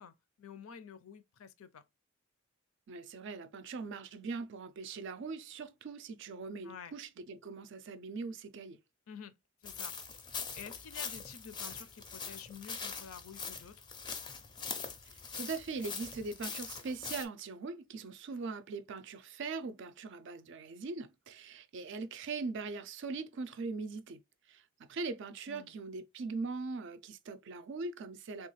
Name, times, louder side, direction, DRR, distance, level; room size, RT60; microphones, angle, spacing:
voice 1, 0.0-1.8 6.6-6.9 9.1-9.4 9.6-10.3 10.5-13.9 25.5-25.7, left 7 dB, 75° left, 0.5 m, -50 dB
voice 2, 2.9-8.8 15.4-24.2 24.5-28.5, right 4 dB, 60° right, 0.4 m, -41 dB
sound 1, 9.7-17.3, left 5 dB, 20° left, 0.4 m, -42 dB
3.4 x 2.4 x 3.0 m
head